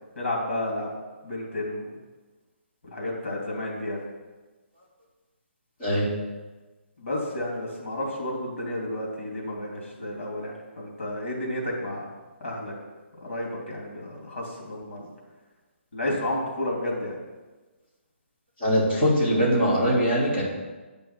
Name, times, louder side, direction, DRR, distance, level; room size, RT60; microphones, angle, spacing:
voice 1, 0.1-0.9 1.2-1.9 2.8-4.0 7.0-12.1 12.4-12.7 13.2-15.1 15.9-17.2, left 1 dB, 75° left, -2 dB, 2.9 m, -31 dB
voice 2, 18.6-20.4, equal, 20° left, -11 dB, 3.6 m, -22 dB
9.5 x 5.7 x 5.9 m, 1.2 s
hypercardioid pair, 175°, 7 cm